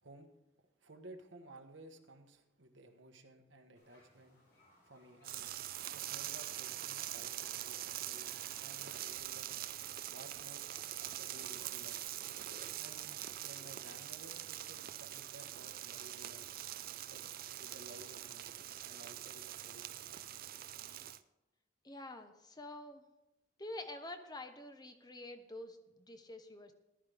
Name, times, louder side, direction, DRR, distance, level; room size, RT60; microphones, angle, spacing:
voice 1, 0.8-4.4 4.8-5.6 5.9-9.5 10.1-10.7 11.0-12.0 12.8-16.5 17.1-17.3 17.6-20.0, right 1 dB, 80° right, 5 dB, 1.3 m, -56 dB
sound 1, 3.7-13.7, equal, 55° left, 5.5 m, -66 dB
sound 2, 5.2-21.2, right 13 dB, 50° right, 0.4 m, -44 dB
voice 2, 21.8-23.0 23.6-26.7, left 2 dB, 20° left, 7 dB, 0.9 m, -47 dB
15.0 x 11.5 x 3.5 m, 0.99 s
head